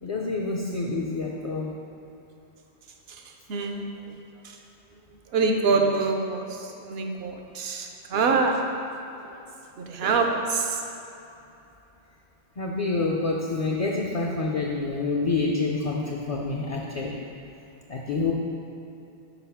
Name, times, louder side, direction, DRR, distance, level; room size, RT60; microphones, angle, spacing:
voice 1, 0.0-1.7 12.6-17.1 17.9-18.3, left 3 dB, 50° left, -2 dB, 0.5 m, -27 dB
voice 2, 3.5-3.8 4.4-4.6 5.3-8.6 9.2-9.4 9.8-10.8, right 4 dB, 70° right, 3 dB, 0.8 m, -25 dB
4.7 x 4.0 x 5.7 m, 2.9 s
omnidirectional pair, 1.1 m